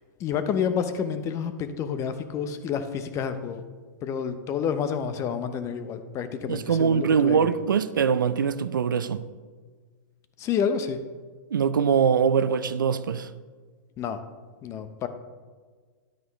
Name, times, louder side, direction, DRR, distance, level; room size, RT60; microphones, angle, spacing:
voice 1, 0.2-3.6 4.0-7.5 10.4-11.0 14.0-14.2 14.6-15.1, left 7 dB, 30° left, 0.8 m, -29 dB
voice 2, 6.5-9.2 11.5-13.3, right 7 dB, 85° right, 0.5 m, -23 dB
10.5 x 9.1 x 3.1 m
hypercardioid pair, 125°, 10 cm